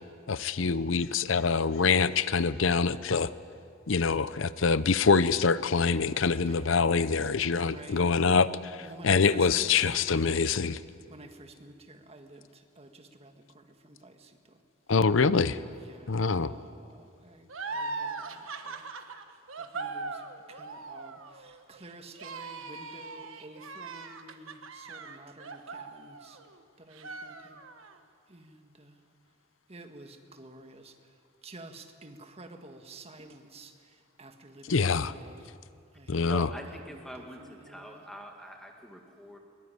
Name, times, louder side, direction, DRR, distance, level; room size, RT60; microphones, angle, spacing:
voice 1, 0.3-3.3 3.9-10.8 14.9-15.6 16.1-16.5 34.7-35.1 36.1-36.5, left 5 dB, 65° left, 16 dB, 0.7 m, -25 dB
voice 2, 7.5-8.2 8.8-10.1 11.1-14.6 15.7-18.8 19.6-20.2 20.5-26.4 26.8-27.6 28.3-29.0 29.7-31.0 31.4-35.5 35.9-36.2 36.9-38.0, right 2 dB, 30° right, 6 dB, 1.8 m, -50 dB
sound 1, 17.5-26.6 26.9-28.0, right 4 dB, 75° right, 1.4 m, -40 dB
voice 3, 36.2-39.4, equal, ahead, 2 dB, 1.9 m, -44 dB
22.0 x 21.0 x 9.8 m, 2.4 s
head